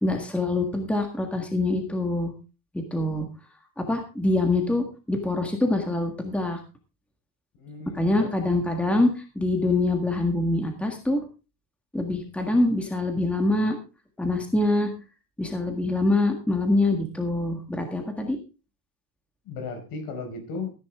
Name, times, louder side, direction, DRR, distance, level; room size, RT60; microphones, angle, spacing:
voice 1, 0.0-2.3 2.7-3.3 3.8-6.6 7.9-9.1 9.3-11.2 11.9-13.8 14.2-14.9 15.4-18.4, left 2 dB, 5° left, 3 dB, 1.7 m, -24 dB
voice 2, 7.6-8.6 19.4-20.7, left 4 dB, 60° left, 6 dB, 5.1 m, -36 dB
15.0 x 10.0 x 3.6 m, 0.31 s
cardioid pair, 170°, 39 cm